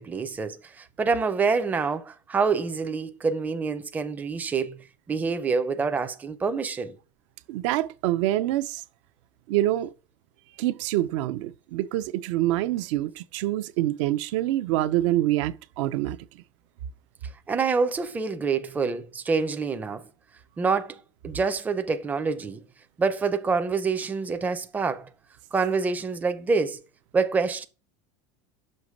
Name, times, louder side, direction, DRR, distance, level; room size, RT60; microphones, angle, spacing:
voice 1, 0.0-7.0 17.5-20.0 20.6-21.0 21.2-22.6 23.0-25.1 25.5-26.8 27.1-27.6, right 4 dB, 10° right, 0.4 m, -26 dB
voice 2, 7.5-8.8 9.5-9.9 10.6-16.2, right 15 dB, 70° right, 0.5 m, -26 dB
6.5 x 2.9 x 5.2 m
supercardioid pair, 145°, 16 cm